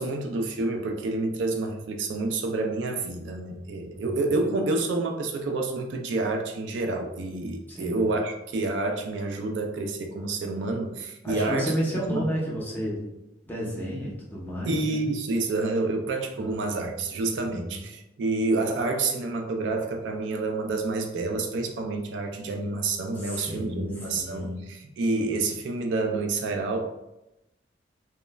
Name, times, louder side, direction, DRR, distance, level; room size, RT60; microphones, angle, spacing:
voice 1, 0.0-11.7 12.1-12.3 14.7-24.5 25.0-26.9, right 3 dB, 75° right, 4 dB, 0.3 m, -28 dB
voice 2, 3.9-4.4 7.7-8.1 11.2-13.0 13.4-15.1 16.4-16.7 17.4-17.8 23.2-24.7, equal, 10° left, -5 dB, 0.7 m, -32 dB
3.0 x 2.1 x 2.2 m, 0.91 s
head